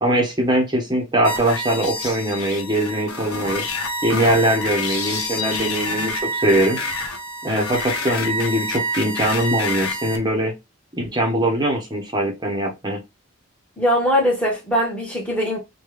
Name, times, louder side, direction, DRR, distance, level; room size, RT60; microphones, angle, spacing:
voice 1, 0.0-3.6 4.0-6.8 7.4-10.5 11.0-13.0, right 1 dB, 20° right, 0.7 m, -21 dB
sound 1, 1.2-10.2, left 1 dB, 80° left, 0.7 m, -27 dB
voice 2, 13.8-15.6, equal, 5° left, 1.1 m, -21 dB
3.1 x 2.2 x 3.1 m
head